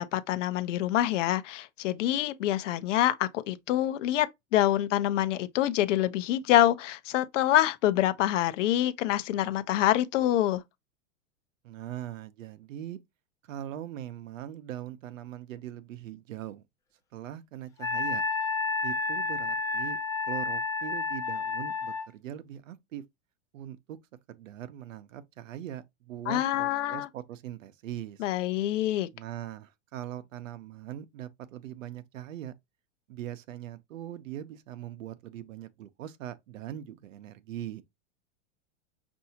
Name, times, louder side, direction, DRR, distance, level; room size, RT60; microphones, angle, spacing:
voice 1, 0.0-10.6 26.3-27.1 28.2-29.1, left 13 dB, 70° left, 0.6 m, -26 dB
voice 2, 11.6-13.0 13.4-16.6 17.1-18.2 18.8-20.0 20.3-23.0 23.5-24.0 24.3-28.3 29.1-32.5 33.1-37.8, right 11 dB, 85° right, 0.7 m, -41 dB
Wind instrument woodwind instrument, 17.8-22.1, left 3 dB, 10° left, 0.4 m, -30 dB
5.5 x 2.7 x 2.7 m
supercardioid pair, 130°, 38 cm